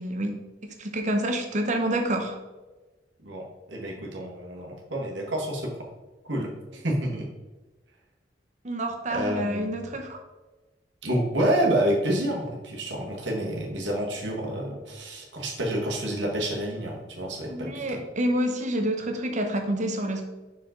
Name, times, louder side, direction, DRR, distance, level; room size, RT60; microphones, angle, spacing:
voice 1, 0.0-2.4 8.6-10.2 17.5-20.3, right 1 dB, 45° right, 5 dB, 0.9 m, -28 dB
voice 2, 3.2-5.9 6.2-7.2 9.1-9.8 11.0-18.0, right 1 dB, 85° right, -1 dB, 1.5 m, -29 dB
5.9 x 4.9 x 3.8 m, 1.2 s
head